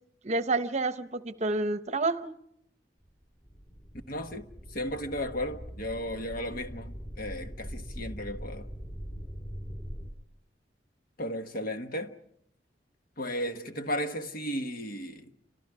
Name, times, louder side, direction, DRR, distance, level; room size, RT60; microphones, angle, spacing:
voice 1, 0.2-2.3, right 3 dB, 40° right, 0.8 m, -29 dB
sound 1, 3.1-3.2 3.5-10.1, equal, 30° left, 4.1 m, -42 dB
voice 2, 4.1-8.7 11.2-12.2 13.2-15.3, equal, 55° left, 1.4 m, -35 dB
29.5 x 26.0 x 4.9 m
head